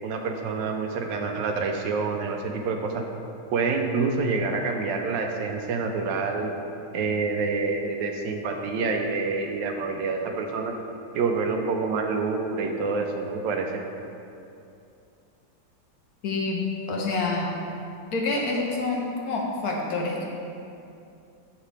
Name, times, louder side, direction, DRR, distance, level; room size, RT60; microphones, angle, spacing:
voice 1, 0.0-3.0 3.5-6.5 6.9-10.7 11.1-13.8, right 4 dB, 80° right, 4 dB, 1.3 m, -27 dB
voice 2, 16.2-17.5 18.1-20.3, left 3 dB, 65° left, -1 dB, 1.1 m, -27 dB
6.8 x 5.9 x 3.2 m, 2.6 s
omnidirectional pair, 2.0 m